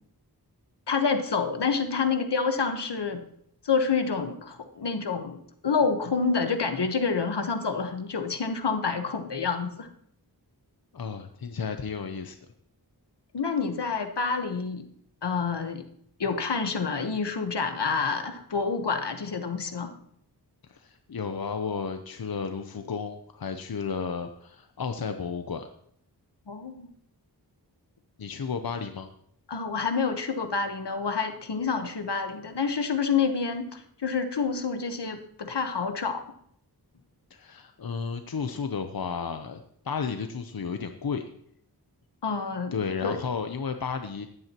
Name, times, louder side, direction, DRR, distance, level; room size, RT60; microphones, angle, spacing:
voice 1, 0.9-3.2 3.6-9.9 13.3-14.8 15.2-15.8 16.2-19.9 26.5-26.9 29.5-36.2 42.2-43.2, left 5 dB, 80° left, 7 dB, 1.3 m, -28 dB
voice 2, 10.9-12.4 20.7-25.7 28.2-29.1 37.3-41.3 42.7-44.3, left 5 dB, 60° left, 7 dB, 0.8 m, -33 dB
15.0 x 11.0 x 3.0 m, 0.67 s
wide cardioid pair, 65°, 40 cm